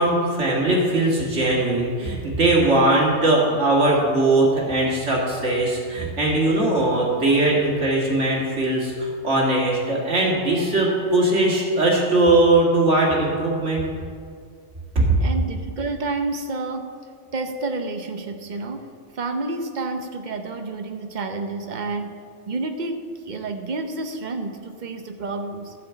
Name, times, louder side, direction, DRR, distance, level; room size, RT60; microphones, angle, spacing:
voice 1, 0.0-13.8 15.0-15.2, right 2 dB, 70° right, -3 dB, 2.4 m, -20 dB
voice 2, 15.2-16.9 17.3-18.8 19.1-22.2 22.5-25.7, right 3 dB, 45° right, 6 dB, 0.9 m, -29 dB
12.0 x 5.1 x 8.2 m, 2.1 s
omnidirectional pair, 1.2 m